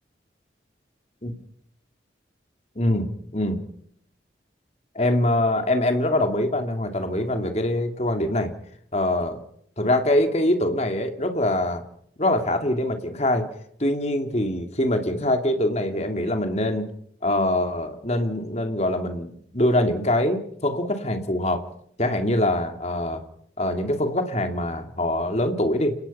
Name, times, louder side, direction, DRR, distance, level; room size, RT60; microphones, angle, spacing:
voice 1, 2.8-3.6 4.9-8.5 8.9-9.4 9.8-11.8 12.2-13.5 13.8-16.9 17.2-21.6 22.0-23.2 23.6-26.0, left 1 dB, 35° left, 6 dB, 2.7 m, -24 dB
29.5 x 18.0 x 5.7 m, 0.69 s
head